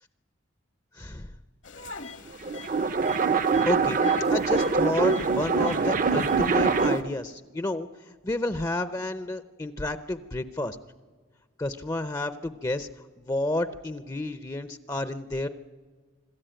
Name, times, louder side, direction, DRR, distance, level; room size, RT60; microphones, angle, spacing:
voice 1, 0.9-1.3 3.7-4.0 4.3-10.8 11.6-12.9 13.2-15.5, left 1 dB, 20° left, 12 dB, 0.6 m, -30 dB
sound 1, 1.6-7.0, left 4 dB, 65° left, 1.2 m, -42 dB
sound 2, 2.3-7.2, right 4 dB, 40° right, 0.6 m, -24 dB
26.0 x 13.5 x 8.9 m, 1.5 s
head